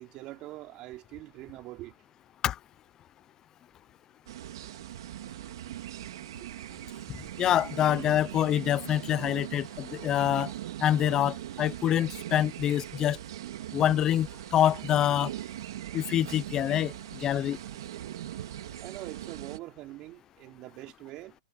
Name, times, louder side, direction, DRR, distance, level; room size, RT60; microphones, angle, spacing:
voice 1, 0.0-1.9 6.4-6.5 18.8-21.4, right 17 dB, 25° right, 4.3 m, -43 dB
sound 1, 4.3-19.6, right 13 dB, 55° right, 2.1 m, -40 dB
voice 2, 7.4-10.5 10.8-13.2 13.7-14.3 14.5-15.3 15.9-17.6, left 11 dB, 20° left, 0.8 m, -26 dB
hypercardioid pair, 155°, 3 cm